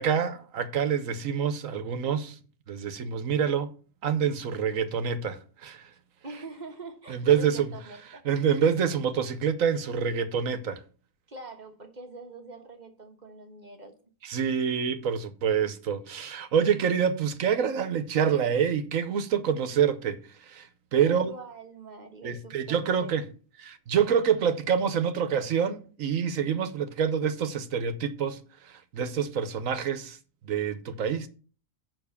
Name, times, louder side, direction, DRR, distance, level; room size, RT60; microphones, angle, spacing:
voice 1, 0.0-2.3 2.7-3.7 4.0-5.8 7.1-7.7 8.2-10.8 14.2-20.2 20.5-21.3 22.2-23.3 23.6-28.4 28.9-30.2 30.4-31.3, right 7 dB, 75° right, 1.3 m, -26 dB
voice 2, 6.2-8.3 11.3-14.0 21.0-23.2, right 2 dB, 35° right, 1.3 m, -44 dB
7.1 x 5.9 x 7.0 m
omnidirectional pair, 1.4 m